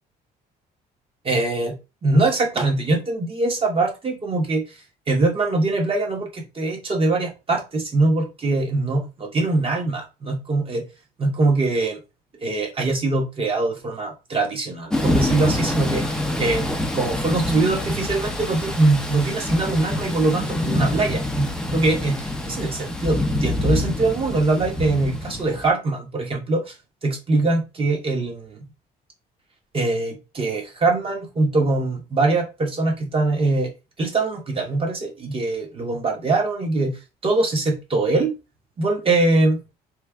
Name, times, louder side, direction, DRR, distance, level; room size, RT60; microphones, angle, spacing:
voice 1, 1.2-4.6 5.1-10.9 11.2-12.0 12.4-26.7 27.0-28.7 29.7-33.7 34.0-38.3 38.8-39.6, right 2 dB, 35° right, 1 dB, 1.3 m, -22 dB
Thunder / Rain, 14.9-25.7, left 1 dB, 5° left, 0.6 m, -26 dB
3.2 x 2.5 x 3.5 m, 0.28 s
cardioid pair, 110°, 17 cm